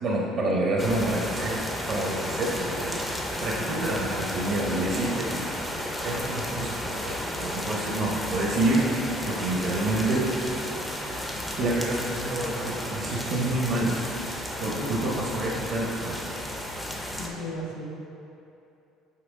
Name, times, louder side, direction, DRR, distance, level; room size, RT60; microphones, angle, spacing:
voice 1, 0.0-1.6 1.9-5.4 6.0-10.3 11.6-13.9 14.6-16.2, right 2 dB, 45° right, -3 dB, 0.8 m, -28 dB
sound 1, 0.8-17.3, equal, 5° left, 0.5 m, -33 dB
voice 2, 14.6-15.2 17.2-17.8, left 1 dB, 70° left, 0 dB, 1.0 m, -35 dB
5.8 x 5.8 x 3.6 m, 2.8 s
cardioid pair, 175°, 0 cm